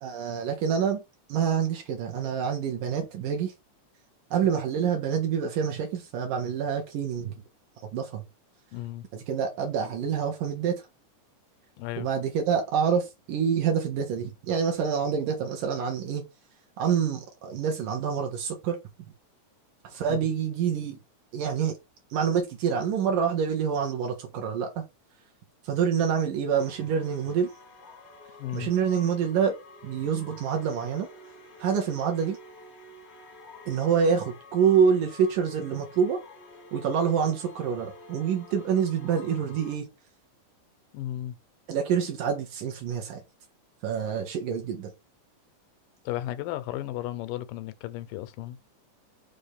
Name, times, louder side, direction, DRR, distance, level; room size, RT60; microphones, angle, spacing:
voice 1, 0.0-1.0 1.3-3.5 4.3-7.4 7.9-8.2 9.1-10.8 12.0-16.2 16.8-18.8 19.8-21.0 21.3-21.8 22.1-24.8 25.6-27.5 28.5-29.6 29.8-31.1 31.6-32.4 33.7-36.2 36.7-39.9 41.7-43.2 43.8-44.9, right 7 dB, 75° right, 2.9 m, -27 dB
voice 2, 8.7-9.1 11.8-12.1 20.1-20.2 28.4-28.7 40.9-41.4 46.1-48.6, left 14 dB, 90° left, 2.4 m, -34 dB
sound 1, 26.5-39.8, left 3 dB, 50° left, 1.0 m, -49 dB
6.2 x 3.4 x 5.6 m
omnidirectional pair, 3.8 m